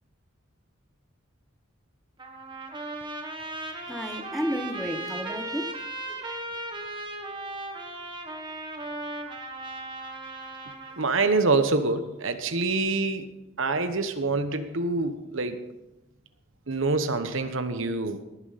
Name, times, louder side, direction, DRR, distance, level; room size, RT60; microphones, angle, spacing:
Trumpet, 2.2-11.1, right 2 dB, 25° right, 1.7 m, -37 dB
voice 1, 3.8-5.8 6.1-6.2, equal, ahead, 5 dB, 1.0 m, -32 dB
voice 2, 11.0-13.3 13.6-15.6 16.7-18.2, right 3 dB, 75° right, 9 dB, 1.2 m, -26 dB
19.0 x 10.0 x 4.2 m, 0.92 s
head